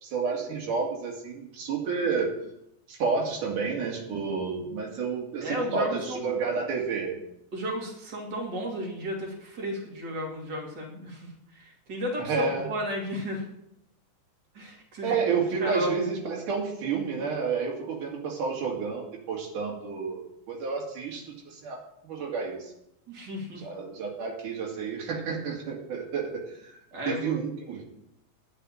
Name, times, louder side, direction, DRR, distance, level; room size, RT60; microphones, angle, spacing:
voice 1, 0.0-2.3 2.9-7.2 12.2-12.7 15.0-21.8 22.0-22.7 23.5-26.8 27.1-27.8, right 5 dB, 85° right, -1 dB, 3.7 m, -30 dB
voice 2, 5.4-6.4 7.5-13.4 14.5-15.2 15.6-16.1 23.1-23.6 26.9-27.4, equal, 35° right, -2 dB, 3.2 m, -33 dB
10.5 x 6.7 x 8.7 m, 0.77 s
omnidirectional pair, 3.5 m